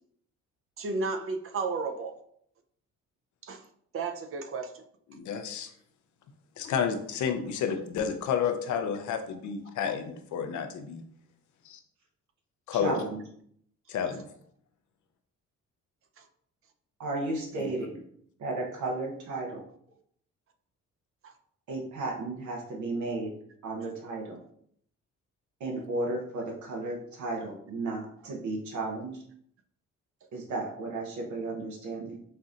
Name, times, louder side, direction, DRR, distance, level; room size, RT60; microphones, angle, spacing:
voice 1, 0.8-2.1 3.4-3.6 3.9-4.7 16.2-16.3 21.2-21.3, right 4 dB, 45° right, 7 dB, 0.6 m, -33 dB
voice 2, 5.1-5.7 6.6-11.0 11.6-11.8 12.7-13.0 13.9-14.3 17.6-17.7, left 7 dB, 75° left, 7 dB, 0.6 m, -30 dB
voice 3, 12.7-13.2 17.0-18.0 18.4-19.6 21.7-23.3 23.6-24.4 25.6-29.2 30.3-32.2, right 2 dB, 70° right, 0 dB, 0.9 m, -34 dB
5.4 x 2.6 x 2.5 m, 0.67 s
cardioid pair, 90°, 30 cm